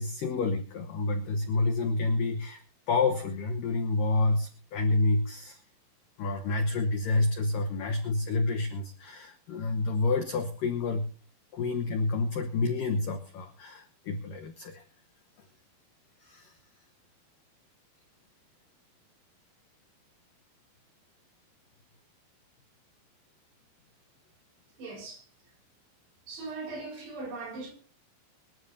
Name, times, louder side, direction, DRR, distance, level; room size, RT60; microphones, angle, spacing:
voice 1, 0.0-2.6 2.9-5.6 6.2-11.1 11.5-14.8 16.2-16.6, left 3 dB, 75° left, 2.0 m, -29 dB
voice 2, 24.8-25.2 26.3-27.7, right 3 dB, 60° right, 6.6 m, -39 dB
24.5 x 12.5 x 2.8 m
omnidirectional pair, 5.5 m